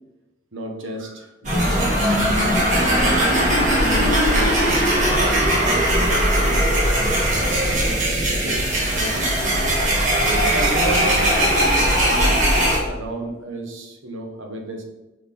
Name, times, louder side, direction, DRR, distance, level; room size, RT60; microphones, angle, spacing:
voice 1, 0.5-4.6 5.1-6.8 7.3-14.8, right 1 dB, 90° right, 2 dB, 1.3 m, -32 dB
sound 1, 1.4-12.8, right 1 dB, 40° right, 1.9 m, -19 dB
6.4 x 5.5 x 3.8 m, 1.0 s
head